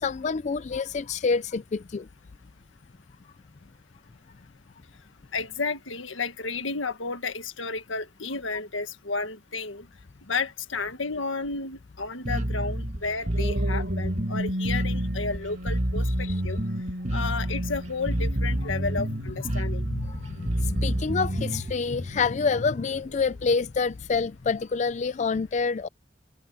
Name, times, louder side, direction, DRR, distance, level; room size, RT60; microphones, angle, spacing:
voice 1, 0.0-2.1 16.2-16.3 19.9-25.9, left 5 dB, 40° left, 0.4 m, -27 dB
voice 2, 5.3-9.9 10.3-16.6 17.1-19.9, left 4 dB, 90° left, 1.6 m, -32 dB
Bass guitar, 12.2-21.7, right 1 dB, 35° right, 1.8 m, -28 dB
sound 1, 12.8-23.4 24.0-24.2, equal, 60° right, 6.0 m, -36 dB
head